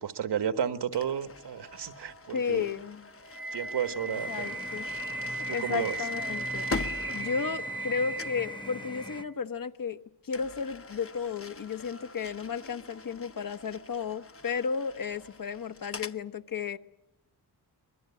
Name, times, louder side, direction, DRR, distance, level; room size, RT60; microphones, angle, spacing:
voice 1, 0.0-2.6 3.5-4.6 5.5-5.9, right 8 dB, 85° right, 10 dB, 1.4 m, -32 dB
sound 1, 0.9-7.9 8.2-8.5 10.3-16.2, left 4 dB, 35° left, 0.9 m, -43 dB
voice 2, 2.3-3.1 4.0-4.9 5.2-6.7 7.1-10.0 10.2-16.8, left 6 dB, 55° left, 10 dB, 1.1 m, -33 dB
Wind instrument woodwind instrument, 3.3-9.3, right 2 dB, 30° right, 0.9 m, -37 dB
sound 2, 4.1-9.2, left 1 dB, 10° left, 1.0 m, -42 dB
24.5 x 21.5 x 8.4 m, 0.95 s
wide cardioid pair, 115°, 40 cm